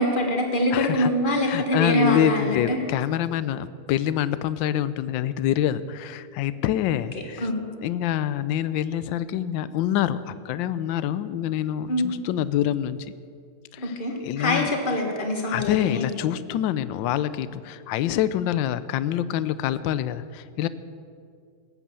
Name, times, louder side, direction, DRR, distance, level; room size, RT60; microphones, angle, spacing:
voice 1, 0.0-2.8 7.4-7.6 11.9-12.1 13.8-16.1, left 1 dB, 25° left, 2 dB, 1.8 m, -24 dB
voice 2, 0.7-1.1 1.4-7.5 7.8-13.0 13.7-14.7 15.5-20.7, left 11 dB, 75° left, 15 dB, 1.2 m, -26 dB
19.0 x 8.6 x 6.9 m, 2.3 s
omnidirectional pair, 2.4 m